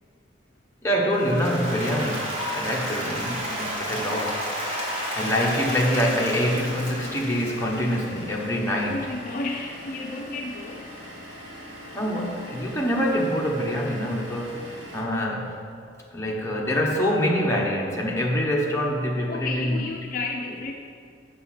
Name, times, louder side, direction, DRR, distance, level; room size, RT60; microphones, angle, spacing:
voice 1, 0.8-4.5 5.1-9.0 11.9-15.6 16.1-19.8, equal, 15° left, -2 dB, 1.0 m, -25 dB
Applause, 1.1-8.3, equal, 30° right, 1.7 m, -31 dB
voice 2, 3.1-3.9 8.7-11.0 19.3-20.7, left 3 dB, 45° left, 2 dB, 0.4 m, -33 dB
Vehicle / Engine, 7.0-15.0, left 1 dB, 65° right, 2.3 m, -41 dB
6.7 x 6.3 x 5.8 m, 2.2 s
head